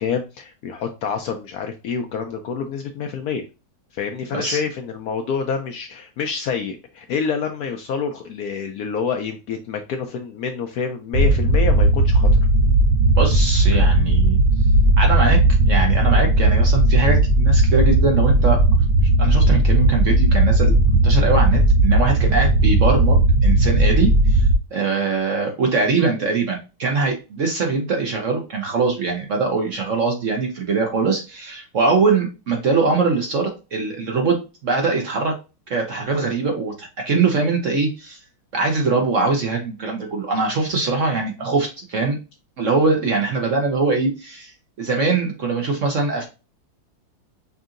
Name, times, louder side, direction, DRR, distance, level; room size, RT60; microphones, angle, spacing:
voice 1, 0.0-3.4 3.9-12.4, left 6 dB, 70° left, 4 dB, 0.9 m, -27 dB
sound 1, 11.1-24.6, right 1 dB, 80° right, 1.5 m, -16 dB
voice 2, 13.2-14.4 15.0-15.4 15.6-18.6 19.2-24.4 24.7-35.3 35.7-38.2 38.5-42.2 42.6-44.5 44.8-46.2, right 4 dB, 55° right, 2 dB, 1.0 m, -22 dB
5.5 x 2.7 x 2.5 m, 0.29 s
omnidirectional pair, 2.0 m